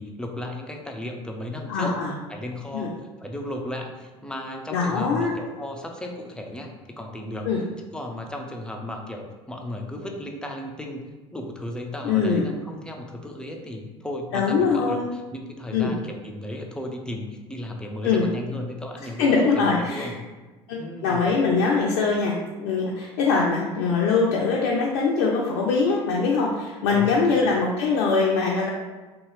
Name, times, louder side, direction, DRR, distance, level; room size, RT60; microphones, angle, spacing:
voice 1, 0.0-2.0 2.3-7.5 7.9-11.0 11.3-20.2 20.8-21.3 26.9-27.2, left 1 dB, 5° left, 1 dB, 0.5 m, -35 dB
voice 2, 1.7-2.1 2.7-2.9 4.7-5.3 7.4-7.6 12.0-12.5 14.3-15.0 15.7-16.0 18.0-18.3 19.2-20.1 20.7-28.7, left 4 dB, 70° left, -3 dB, 0.4 m, -22 dB
2.7 x 2.3 x 3.1 m, 1.2 s
hypercardioid pair, 70°, 15 cm